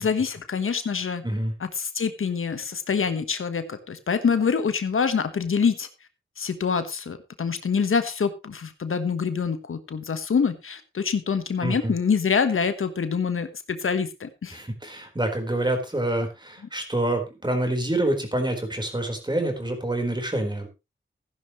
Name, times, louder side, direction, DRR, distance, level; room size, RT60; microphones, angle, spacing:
voice 1, 0.0-1.2 1.6-5.9 6.4-14.6, left 6 dB, 85° left, 10 dB, 1.3 m, -25 dB
voice 2, 11.6-11.9 14.5-20.7, right 1 dB, 20° right, 4 dB, 4.3 m, -27 dB
15.0 x 10.5 x 3.1 m, 0.25 s
wide cardioid pair, 80°, 21 cm